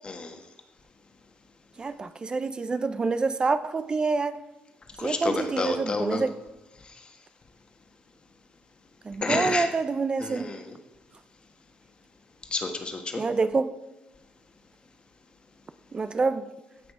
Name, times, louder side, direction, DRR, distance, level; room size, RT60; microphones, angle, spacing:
voice 1, 0.0-0.4 5.0-6.2 6.9-7.0 9.2-9.7 10.2-10.8 12.5-13.2, left 3 dB, 30° left, 1.5 m, -30 dB
voice 2, 1.8-4.3 5.0-6.3 9.0-10.5 13.2-13.7 15.9-16.5, right 4 dB, 25° right, 0.5 m, -27 dB
16.0 x 6.0 x 4.9 m
cardioid pair, 140°, 3 cm